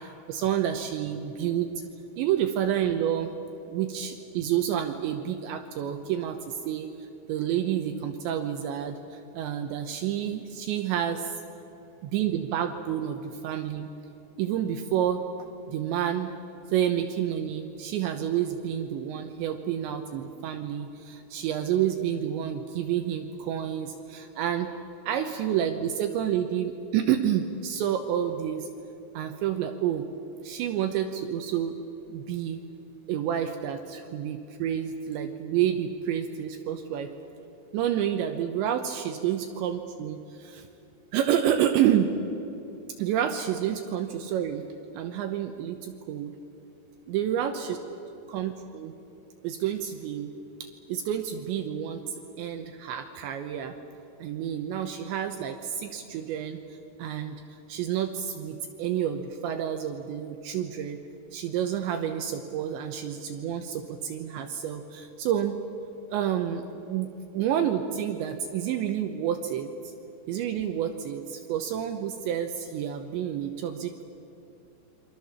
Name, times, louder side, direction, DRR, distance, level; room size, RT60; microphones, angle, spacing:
voice 1, 0.0-1.7 2.2-3.3 3.7-6.9 7.3-11.3 12.0-13.9 14.4-15.2 15.7-16.3 16.7-24.7 25.1-28.7 29.1-30.0 30.4-31.8 32.1-32.6 33.1-37.1 37.7-40.7 41.1-42.1 43.0-44.6 44.9-46.3 47.1-47.8 48.3-48.9 49.4-50.3 50.9-53.7 54.2-56.6 57.0-57.4 57.7-61.0 61.3-65.6 66.1-67.1 67.3-69.7 70.3-74.0, right 10 dB, 75° right, 6 dB, 3.0 m, -29 dB
28.5 x 24.5 x 7.2 m, 2.9 s
omnidirectional pair, 5.9 m